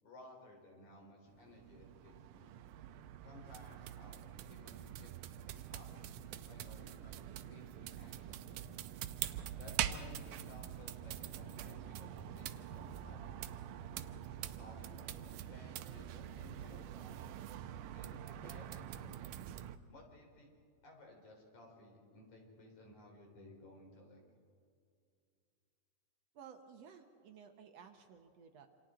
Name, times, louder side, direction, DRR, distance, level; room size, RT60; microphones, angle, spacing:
voice 1, 0.0-2.5 3.2-5.1 5.6-5.9 6.3-8.9 9.6-13.7 14.6-17.3 17.9-19.2 19.9-20.5 20.8-24.2, left 2 dB, 65° left, 0 dB, 5.4 m, -58 dB
sound 1, 1.3-19.8, right 11 dB, 85° right, 2.2 m, -45 dB
voice 2, 26.3-28.7, right 7 dB, 65° right, 5 dB, 1.9 m, -56 dB
27.5 x 27.0 x 3.8 m, 2.4 s
omnidirectional pair, 3.5 m